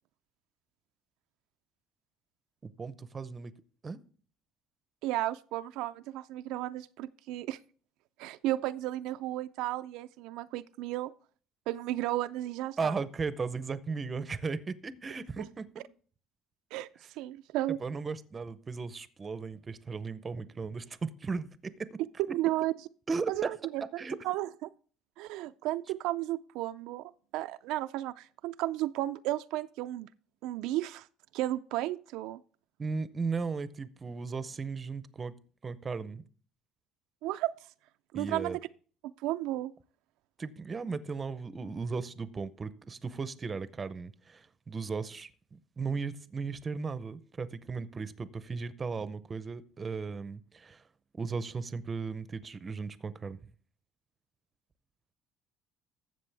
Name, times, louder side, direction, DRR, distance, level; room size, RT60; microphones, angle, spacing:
voice 1, 2.6-3.5 3.8-4.0 12.8-15.7 17.0-17.1 17.8-22.0 23.1-23.5 24.0-24.2 32.8-35.3 35.6-36.2 38.1-38.6 40.4-50.9 51.2-53.4, right 4 dB, 25° right, 0.6 m, -36 dB
voice 2, 5.0-7.6 8.2-11.1 11.7-12.9 16.7-16.9 17.2-17.8 22.3-22.7 23.3-24.7 25.2-30.1 30.4-31.1 31.3-32.4 37.2-37.5 38.1-38.6 39.2-39.7, right 15 dB, 80° right, 0.4 m, -33 dB
13.0 x 7.5 x 3.4 m
cardioid pair, 130°, 0 cm